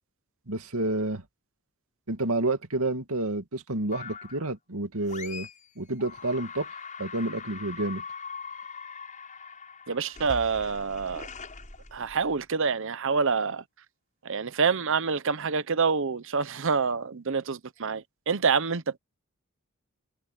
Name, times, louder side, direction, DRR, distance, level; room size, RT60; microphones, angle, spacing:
voice 1, 0.5-1.2 2.1-5.5 5.8-6.7 7.0-8.0, right 2 dB, 85° right, 2.3 m, -29 dB
sound 1, 3.9-4.5 5.1-5.7 6.0-12.4, left 5 dB, 35° left, 7.6 m, -42 dB
voice 2, 9.9-11.3 11.9-13.6 14.2-18.8, right 5 dB, 60° right, 0.9 m, -27 dB
head